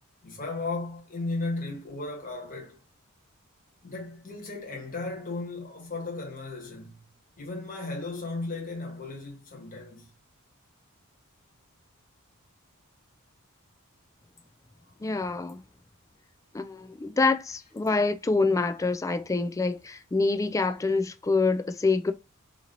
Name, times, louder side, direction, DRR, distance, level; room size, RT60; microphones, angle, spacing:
voice 1, 0.2-2.8 3.8-7.0 7.4-10.1 17.9-18.0, left 3 dB, 40° left, 1.4 m, -35 dB
voice 2, 15.0-15.6 16.5-22.1, left 3 dB, 15° left, 0.3 m, -26 dB
2.9 x 2.8 x 3.8 m
head